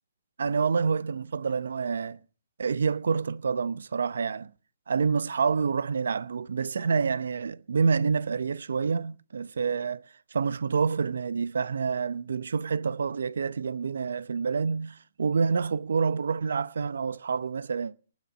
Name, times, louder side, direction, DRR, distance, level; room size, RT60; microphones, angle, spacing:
voice 1, 0.4-2.2 2.6-4.5 4.9-18.0, right 5 dB, 80° right, 0.9 m, -28 dB
19.0 x 7.4 x 9.6 m
hypercardioid pair, 165°, 0 cm